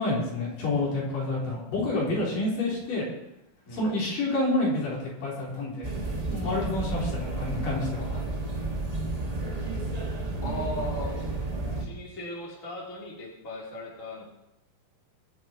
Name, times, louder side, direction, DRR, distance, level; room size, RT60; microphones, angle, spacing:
voice 1, 0.0-3.1 3.7-5.9 6.3-8.2, left 2 dB, 65° left, -5 dB, 5.1 m, -28 dB
sound 1, 5.8-11.8, right 2 dB, 40° right, 0.5 m, -31 dB
voice 2, 10.4-11.5 11.8-14.2, left 1 dB, 20° left, -4 dB, 3.5 m, -38 dB
24.0 x 8.0 x 4.4 m, 0.89 s
omnidirectional pair, 4.2 m